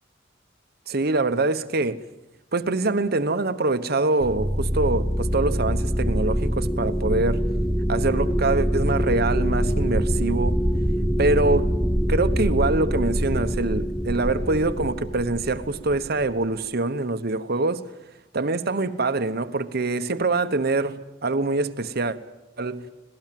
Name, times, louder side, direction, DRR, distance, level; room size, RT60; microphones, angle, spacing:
voice 1, 0.9-2.0 2.5-7.4 7.9-10.6 11.2-11.7 12.1-17.8 18.3-22.2 22.6-22.9, right 2 dB, 55° right, 1.0 m, -24 dB
sound 1, 4.2-16.5, equal, ahead, 0.7 m, -24 dB
26.0 x 17.5 x 7.6 m
head